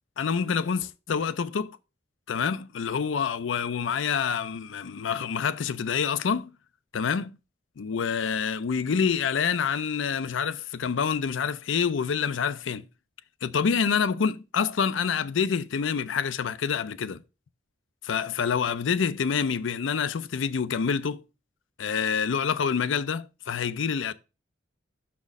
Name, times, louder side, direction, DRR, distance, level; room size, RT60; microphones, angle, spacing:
voice 1, 0.2-1.8 2.3-6.5 6.9-7.3 7.8-12.8 13.4-17.2 18.0-21.2 21.8-24.1, left 6 dB, 90° left, 0.5 m, -27 dB
6.1 x 4.3 x 5.2 m
head